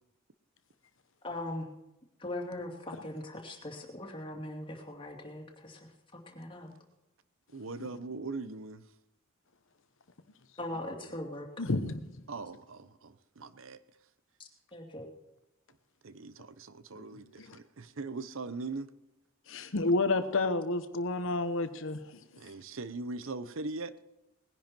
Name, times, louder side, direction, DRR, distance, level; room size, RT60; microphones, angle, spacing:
voice 1, 1.2-1.7 2.2-6.7 10.6-11.5 11.9-12.0 14.4-15.1, left 1 dB, 25° left, 2.7 m, -40 dB
voice 2, 7.5-8.9 12.3-13.8 16.0-18.9 22.4-24.0, right 3 dB, 65° right, 0.8 m, -40 dB
voice 3, 11.6-12.0 17.1-17.6 19.5-22.5, left 2 dB, 65° left, 1.0 m, -31 dB
19.5 x 10.5 x 4.5 m
head